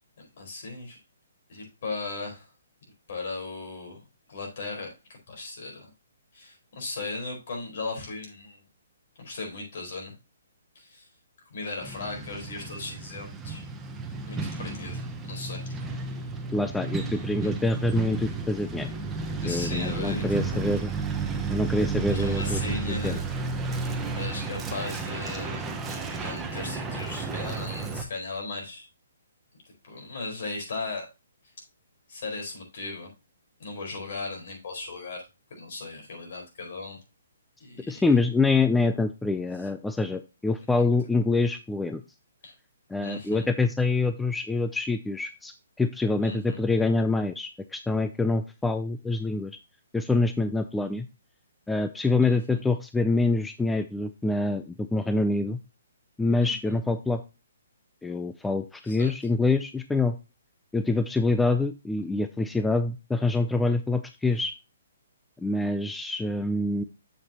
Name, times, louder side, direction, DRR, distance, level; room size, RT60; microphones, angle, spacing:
voice 1, 0.4-1.0 1.5-2.5 3.1-4.0 4.3-5.9 6.3-8.6 9.2-10.1 10.7-11.1 11.5-13.6 14.3-15.0 15.3-15.7 19.4-20.7 22.1-23.2 24.2-28.9 29.6-31.1 32.1-33.1 33.6-37.0 37.6-38.0 42.4-42.5 43.0-43.5 46.2-46.6 52.2-52.6 56.4-56.8 58.8-59.1, left 3 dB, 60° left, 2 dB, 4.6 m, -37 dB
Truck, 11.8-28.0, right 4 dB, 10° right, 1.0 m, -32 dB
voice 2, 16.5-18.9 19.4-20.9 21.5-22.6 22.9-23.2 37.9-42.0 42.9-49.5 49.9-51.1 51.7-55.6 56.2-57.2 58.0-60.2 60.7-64.5 65.4-66.8, left 3 dB, 5° left, 9 dB, 0.4 m, -26 dB
7.5 x 7.3 x 2.9 m, 0.27 s
hypercardioid pair, 155°, 0 cm